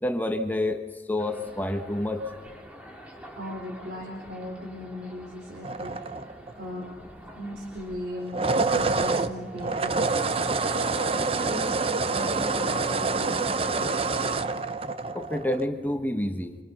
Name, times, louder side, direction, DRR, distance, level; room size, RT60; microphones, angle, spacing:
voice 1, 0.0-2.3 15.1-16.6, left 1 dB, 10° left, 6 dB, 1.3 m, -28 dB
sound 1, 1.2-12.9, equal, 5° right, 2.4 m, -47 dB
voice 2, 3.4-7.0 7.3-14.4, left 1 dB, 65° right, -2 dB, 3.8 m, -38 dB
sound 2, 5.6-6.6 8.2-15.6, right 3 dB, 30° right, 0.7 m, -27 dB
27.0 x 23.0 x 5.7 m, 1.4 s
head